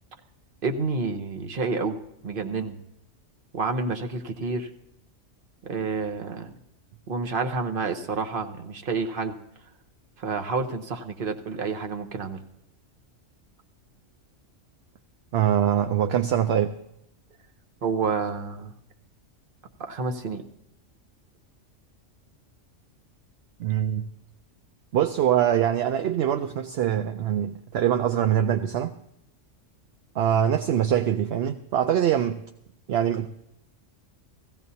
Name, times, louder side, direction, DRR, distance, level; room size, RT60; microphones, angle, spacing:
voice 1, 0.6-2.0 2.2-2.8 3.5-4.7 5.6-6.5 7.1-9.3 10.2-12.4 17.8-18.7 19.8-20.4, right 4 dB, 45° right, 1.1 m, -29 dB
voice 2, 15.3-16.8 23.6-24.1 24.9-28.9 30.1-32.4 32.9-33.3, right 10 dB, 65° right, 0.8 m, -23 dB
17.0 x 16.0 x 2.8 m
omnidirectional pair, 1.3 m